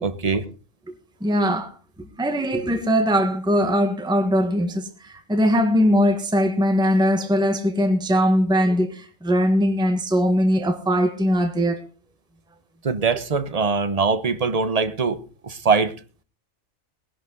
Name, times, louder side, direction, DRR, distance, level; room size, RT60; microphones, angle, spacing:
voice 1, 0.0-0.4 12.8-15.9, right 4 dB, 30° right, 0.9 m, -22 dB
voice 2, 1.2-1.7 2.0-11.8, equal, 5° right, 1.4 m, -21 dB
19.5 x 11.5 x 3.9 m
omnidirectional pair, 1.4 m